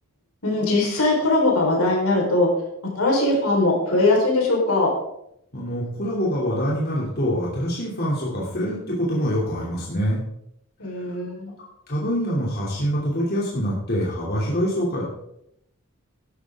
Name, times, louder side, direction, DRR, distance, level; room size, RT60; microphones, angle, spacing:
voice 1, 0.4-2.5 2.9-4.9 10.8-11.5, left 2 dB, 75° left, -1 dB, 4.2 m, -20 dB
voice 2, 5.5-10.2 11.9-15.0, equal, 45° left, -5 dB, 2.8 m, -25 dB
12.5 x 11.5 x 3.7 m, 0.77 s
head